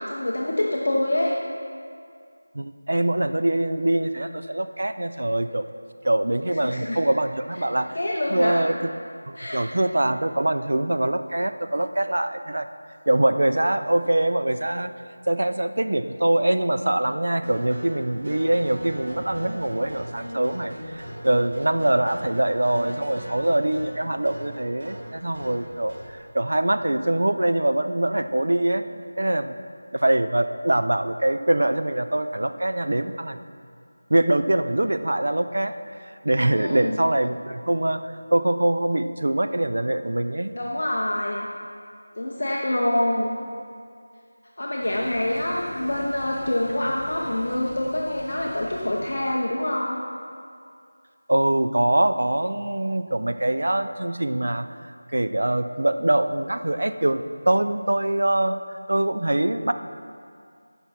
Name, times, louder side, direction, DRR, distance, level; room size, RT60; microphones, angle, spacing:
voice 1, 0.0-1.3 6.6-7.0 7.9-8.6 9.4-9.6 36.5-37.0 40.5-41.5 42.1-43.3 44.6-50.0, left 1 dB, 40° left, -3 dB, 0.8 m, -26 dB
voice 2, 2.5-5.6 6.0-7.9 8.3-8.9 9.3-12.7 13.1-14.9 15.3-28.8 29.2-29.5 29.9-33.4 34.1-35.7 36.1-38.0 38.3-40.5 51.3-54.7 55.1-59.7, right 1 dB, 60° right, 9 dB, 0.5 m, -23 dB
sound 1, 17.4-26.1, equal, 35° right, 2.4 m, -38 dB
sound 2, 44.8-49.4, left 1 dB, 15° left, 0.9 m, -42 dB
15.0 x 5.9 x 4.2 m, 2.3 s
figure-of-eight pair, 180°, 0 cm